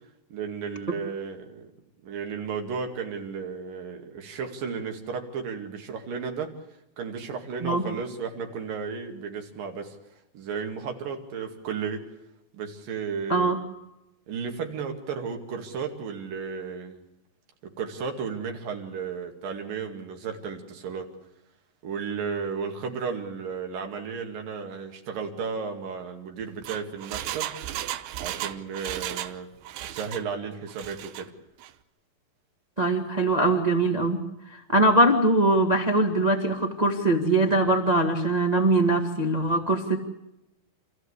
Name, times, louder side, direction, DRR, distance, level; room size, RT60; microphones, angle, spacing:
voice 1, 0.3-1.7 2.0-6.5 7.0-10.0 10.3-12.0 12.5-13.7 14.3-17.0 17.8-21.1 21.8-27.5 28.2-29.5 29.8-31.3, right 5 dB, 65° right, 3 dB, 4.0 m, -34 dB
Engine, 26.4-29.4 29.6-30.3 30.7-31.2 31.6-31.7, right 13 dB, 90° right, 2.9 m, -35 dB
voice 2, 32.8-34.2 34.5-40.0, right 2 dB, 35° right, 2 dB, 0.6 m, -22 dB
28.0 x 15.0 x 8.3 m, 0.91 s
omnidirectional pair, 4.3 m